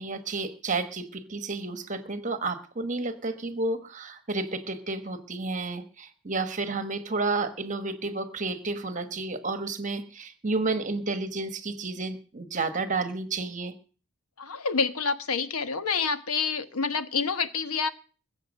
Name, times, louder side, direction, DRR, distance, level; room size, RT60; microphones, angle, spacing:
voice 1, 0.0-13.7, right 3 dB, 35° right, 9 dB, 1.2 m, -31 dB
voice 2, 14.4-17.9, left 5 dB, 85° left, 11 dB, 1.1 m, -28 dB
21.5 x 8.1 x 6.3 m, 0.39 s
head